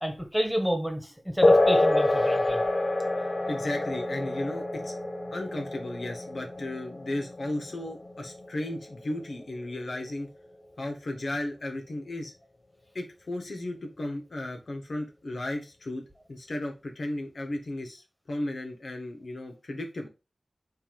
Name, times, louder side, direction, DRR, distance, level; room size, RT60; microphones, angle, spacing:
voice 1, 0.0-2.6, equal, ahead, 1.7 m, -29 dB
sound 1, 1.4-9.4, left 2 dB, 50° left, 0.8 m, -27 dB
voice 2, 3.5-4.9 5.3-10.3 10.8-12.3 12.9-16.0 16.3-20.1, left 1 dB, 70° left, 1.7 m, -35 dB
8.6 x 2.9 x 5.4 m
wide cardioid pair, 85°, 0 cm